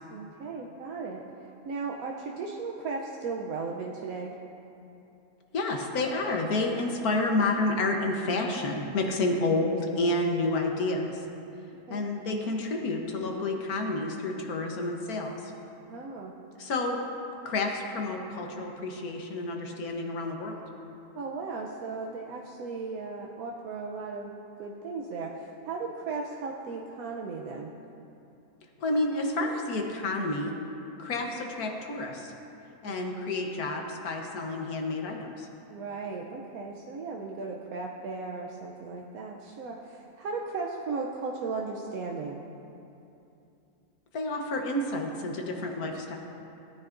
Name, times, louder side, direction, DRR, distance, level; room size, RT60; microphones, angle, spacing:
voice 1, 0.1-1.2 1.7-4.3 9.3-9.4 11.9-12.1 15.9-16.3 21.2-24.3 24.6-27.7 32.8-33.1 35.7-42.4, right 4 dB, 80° right, -1 dB, 1.2 m, -36 dB
voice 2, 5.5-11.2 11.9-15.5 16.6-17.0 17.4-20.6 28.8-30.6 31.0-32.3 32.8-35.5 44.1-46.2, left 2 dB, 85° left, 2 dB, 1.6 m, -30 dB
17.0 x 9.5 x 2.6 m, 2.8 s
omnidirectional pair, 1.5 m